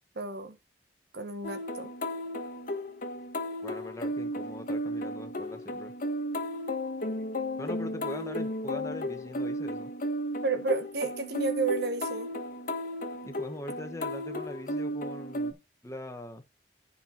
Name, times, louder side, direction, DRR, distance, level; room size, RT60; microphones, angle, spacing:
voice 1, 0.2-0.5 1.1-1.9 10.4-12.3, right 3 dB, 65° right, 1.4 m, -31 dB
sound 1, 1.4-15.5, equal, 50° left, 1.4 m, -34 dB
voice 2, 3.6-5.9 7.6-9.9 13.3-15.6 15.8-16.4, left 1 dB, 20° left, 1.2 m, -41 dB
10.0 x 5.6 x 4.4 m
head